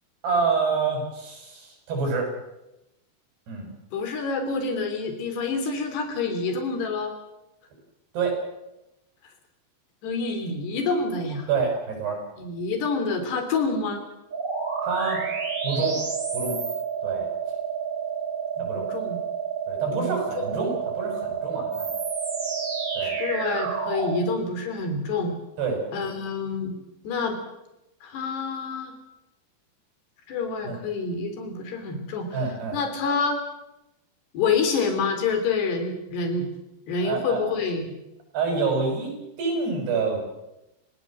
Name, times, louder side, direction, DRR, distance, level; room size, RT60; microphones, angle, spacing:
voice 1, 0.2-2.3 3.5-3.7 8.1-8.4 11.5-12.2 14.8-15.2 15.6-16.0 16.3-16.6 17.0-17.3 18.6-18.9 19.7-21.9 22.9-23.1 25.6-25.8 30.7-30.8 32.3-32.8 37.0-37.4 38.3-39.1 39.4-40.2, right 4 dB, 75° right, 2 dB, 8.8 m, -27 dB
voice 2, 3.9-7.1 10.0-11.5 12.4-14.0 18.7-19.2 19.9-20.6 23.0-25.3 25.9-26.8 27.1-27.4 28.0-28.9 30.3-32.3 32.7-33.4 34.3-36.5 36.9-37.9, left 4 dB, 80° left, 6 dB, 5.7 m, -27 dB
sound 1, 14.3-24.2, right 6 dB, 25° right, 2.8 m, -29 dB
28.5 x 17.5 x 7.7 m, 0.93 s
omnidirectional pair, 4.7 m